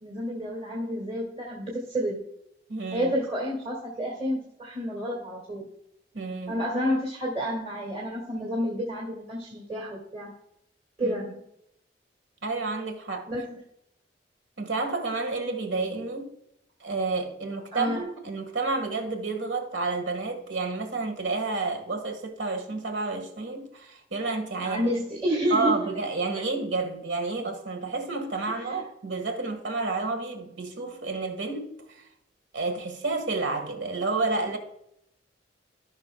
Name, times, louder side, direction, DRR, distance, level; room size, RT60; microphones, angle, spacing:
voice 1, 0.0-2.2 2.9-5.7 6.5-10.3 11.0-11.4 13.3-13.6 17.7-18.1 24.6-25.9 28.7-28.8, equal, 30° right, 1.8 m, -30 dB
voice 2, 2.7-3.1 6.1-6.6 11.0-11.2 12.4-13.3 14.6-16.3 16.8-24.9 25.5-32.0 32.5-34.6, right 3 dB, 80° right, 1.6 m, -30 dB
15.0 x 6.1 x 2.2 m
head